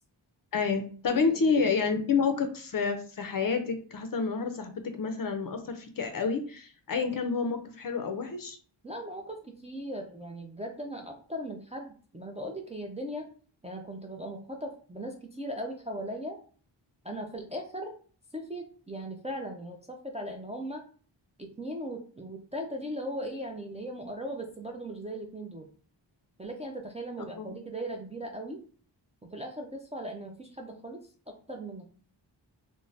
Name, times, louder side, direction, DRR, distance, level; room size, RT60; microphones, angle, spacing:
voice 1, 0.5-8.6 27.2-27.5, left 5 dB, 50° left, 6 dB, 0.5 m, -29 dB
voice 2, 8.8-13.3 13.6-16.4 17.0-17.9 18.3-20.8 21.4-25.6 26.4-28.6 29.3-31.0 31.5-31.8, equal, 15° right, 1 dB, 0.3 m, -38 dB
2.5 x 2.1 x 3.2 m, 0.42 s
wide cardioid pair, 95°, 46 cm